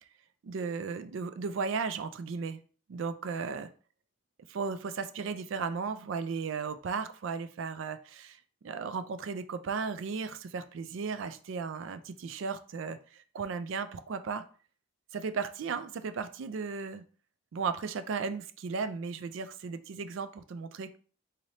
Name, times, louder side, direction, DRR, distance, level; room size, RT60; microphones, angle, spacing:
voice 1, 0.4-2.6 2.9-3.7 4.5-8.4 8.6-13.0 13.3-14.4 15.1-17.0 17.5-21.0, right 5 dB, 75° right, 11 dB, 0.4 m, -35 dB
4.0 x 3.2 x 2.7 m, 0.40 s
head